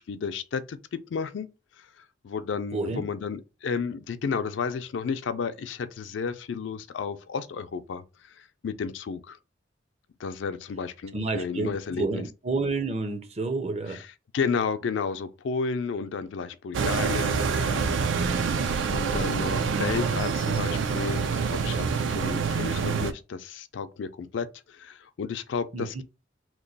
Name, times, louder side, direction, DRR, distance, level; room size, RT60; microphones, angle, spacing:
voice 1, 0.0-1.5 1.8-9.4 10.2-12.2 13.8-18.6 18.9-26.0, left 5 dB, 80° left, 0.4 m, -32 dB
voice 2, 2.7-3.0 11.1-14.0 25.7-25.9, right 3 dB, 35° right, 0.5 m, -29 dB
sound 1, 16.7-23.1, right 5 dB, 90° right, 0.4 m, -26 dB
3.0 x 2.2 x 3.9 m
head